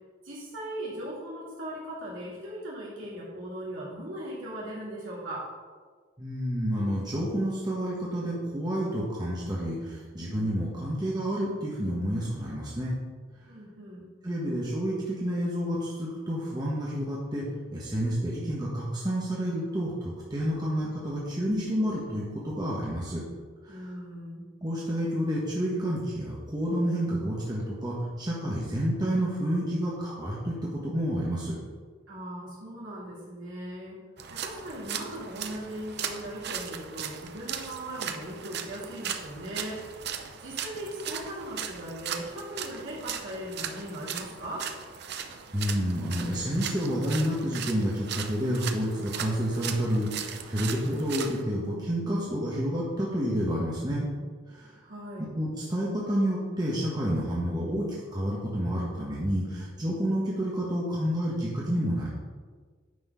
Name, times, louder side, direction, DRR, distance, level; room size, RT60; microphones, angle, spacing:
voice 1, 0.2-5.5 13.5-14.1 23.7-24.5 32.1-34.0 34.3-39.9 40.4-44.7 54.8-55.3, right 1 dB, 80° right, -6 dB, 2.6 m, -39 dB
voice 2, 6.2-13.0 14.2-17.4 17.7-23.2 23.7-23.8 24.6-30.5 30.8-31.6 45.2-54.1 54.5-54.7 55.2-62.1, equal, 20° right, -6 dB, 1.3 m, -29 dB
sound 1, 34.2-51.4, right 8 dB, 55° right, 0.7 m, -38 dB
9.6 x 4.4 x 5.6 m, 1.5 s
head